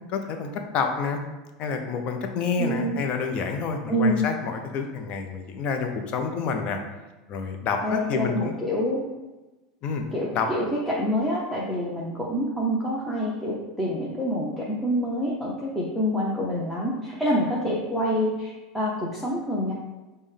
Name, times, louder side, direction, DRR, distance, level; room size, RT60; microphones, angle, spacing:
voice 1, 0.1-1.2 1.6-6.8 7.3-8.5 9.8-10.0 10.3-10.5, left 5 dB, 50° left, 4 dB, 0.6 m, -28 dB
voice 2, 2.6-3.0 3.9-4.2 7.8-9.0 10.1-19.7, equal, ahead, -6 dB, 0.8 m, -26 dB
5.2 x 2.2 x 3.3 m, 1.1 s
hypercardioid pair, 95°, 3 cm